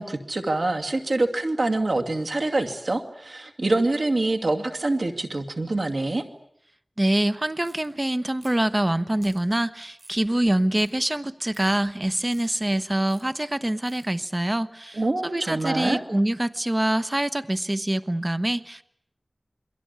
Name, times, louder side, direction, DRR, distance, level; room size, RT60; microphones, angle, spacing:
voice 1, 0.0-6.2 14.9-16.0, right 2 dB, 75° right, 4 dB, 2.4 m, -25 dB
voice 2, 7.0-18.8, right 1 dB, 35° right, 13 dB, 1.1 m, -25 dB
sound 1, 7.6-7.9 8.4-8.7 9.2-9.4 10.0-10.2 10.8-10.9 11.5-11.7 12.3-12.5 13.1-13.2 13.9-14.1, right 1 dB, 50° right, 7.7 m, -52 dB
28.5 x 22.5 x 8.4 m, 0.73 s
wide cardioid pair, 40°, 0 cm